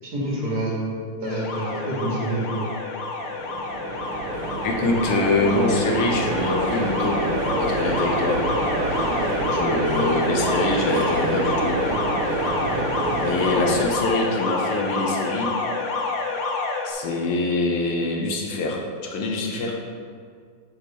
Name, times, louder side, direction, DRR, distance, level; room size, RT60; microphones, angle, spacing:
voice 1, 0.0-0.8 1.2-2.7, right 1 dB, 50° right, -5 dB, 2.3 m, -27 dB
Alarm, 1.2-16.9, left 3 dB, 65° left, 1.5 m, -28 dB
sound 1, 3.0-13.8, right 3 dB, 85° right, 1.6 m, -27 dB
voice 2, 4.6-7.3 7.6-8.4 9.5-11.8 13.2-15.5 16.9-19.8, left 2 dB, 85° left, 0 dB, 1.9 m, -24 dB
7.8 x 6.3 x 4.3 m, 2.2 s
omnidirectional pair, 2.3 m